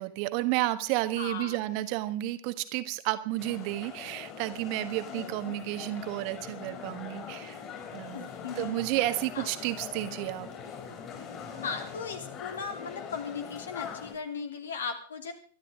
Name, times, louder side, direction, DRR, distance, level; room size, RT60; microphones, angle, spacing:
voice 1, 0.0-7.6 7.9-8.3 8.6-10.5, right 17 dB, 45° right, 11 dB, 1.3 m, -31 dB
voice 2, 1.2-1.6 5.2-5.5 8.1-8.8 9.3-9.5 11.6-15.3, left 5 dB, 70° left, 5 dB, 3.0 m, -37 dB
sound 1, 3.4-14.1, left 7 dB, 35° left, 6.6 m, -42 dB
24.0 x 12.0 x 3.6 m, 0.43 s
figure-of-eight pair, 95°, 0 cm